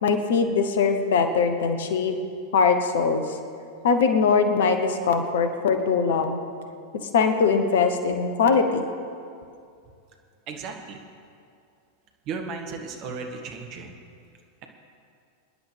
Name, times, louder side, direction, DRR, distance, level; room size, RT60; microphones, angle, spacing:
voice 1, 0.0-2.2 2.5-3.4 3.8-6.4 7.1-8.8, left 5 dB, 60° left, 7 dB, 1.1 m, -21 dB
voice 2, 10.5-11.0 12.2-14.0, right 4 dB, 40° right, 3 dB, 1.6 m, -35 dB
24.0 x 10.5 x 3.4 m, 2.4 s
figure-of-eight pair, 90°, 0 cm